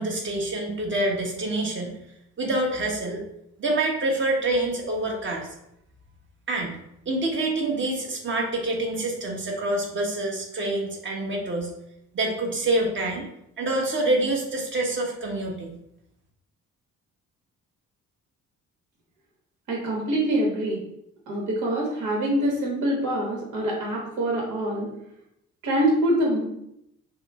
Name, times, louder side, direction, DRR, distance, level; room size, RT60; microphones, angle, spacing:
voice 1, 0.0-1.9 2.4-3.2 3.6-5.5 6.5-6.7 7.0-11.7 12.1-13.3 13.6-15.8, right 2 dB, 40° right, 0 dB, 1.3 m, -26 dB
voice 2, 19.7-20.8 21.3-24.9 25.6-26.4, right 1 dB, 75° right, -2 dB, 1.4 m, -25 dB
6.3 x 2.2 x 3.6 m, 0.78 s
cardioid pair, 90°, 30 cm